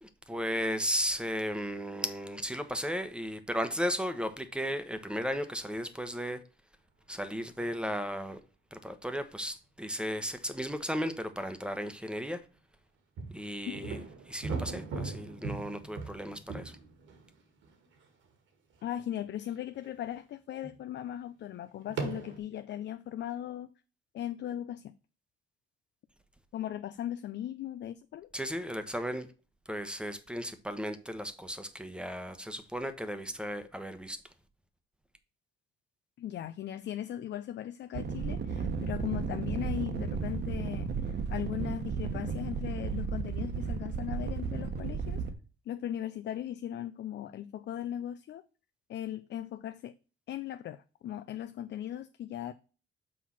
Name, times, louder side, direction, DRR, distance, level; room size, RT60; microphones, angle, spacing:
voice 1, 0.0-6.4 7.1-8.4 8.7-12.4 13.3-14.0 14.3-16.7 28.3-29.3 29.7-34.2, equal, 5° right, 1.0 m, -35 dB
sound 1, 7.6-8.0 13.2-18.0 18.7-18.8 19.5-19.9 20.6-20.8 21.9-22.4, right 4 dB, 75° right, 1.9 m, -39 dB
voice 2, 18.8-23.7 24.1-24.9 26.5-28.3 36.2-45.2 45.7-48.4 48.9-49.9 50.3-52.5, left 11 dB, 65° left, 0.5 m, -38 dB
sound 2, 37.9-45.3, right 5 dB, 60° right, 1.2 m, -34 dB
6.2 x 4.6 x 5.7 m
cardioid pair, 90°, 20 cm